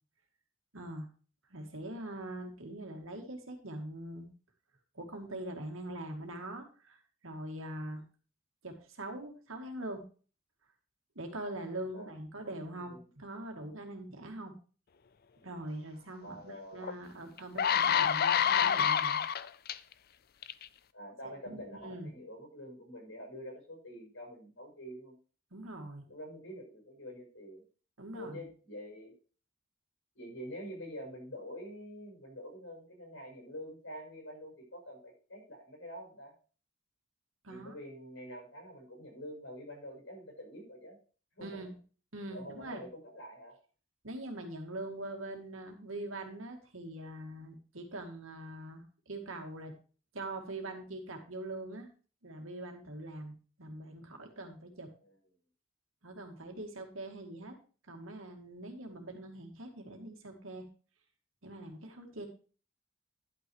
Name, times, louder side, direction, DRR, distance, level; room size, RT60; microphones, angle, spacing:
voice 1, 0.7-1.1 1.5-4.3 4.9-7.0 7.2-8.0 8.6-10.0 11.2-14.5 15.4-19.2 21.5-22.1 25.5-26.0 28.0-28.4 37.4-37.7 41.4-41.7 42.1-42.8 44.0-49.7 50.1-51.9 52.2-54.9 56.0-57.6 57.9-60.6 61.4-62.3, right 1 dB, 80° right, 3 dB, 2.3 m, -43 dB
voice 2, 12.4-13.1 16.2-16.9 20.9-25.1 26.1-27.6 28.1-29.1 30.1-36.3 37.5-41.0 41.4-41.6 42.3-43.6, equal, 75° left, 2 dB, 6.1 m, -46 dB
sound 1, 16.8-16.9 17.4-19.7 20.4-20.6, left 8 dB, 50° left, 0.5 m, -27 dB
11.0 x 6.2 x 4.7 m, 0.37 s
head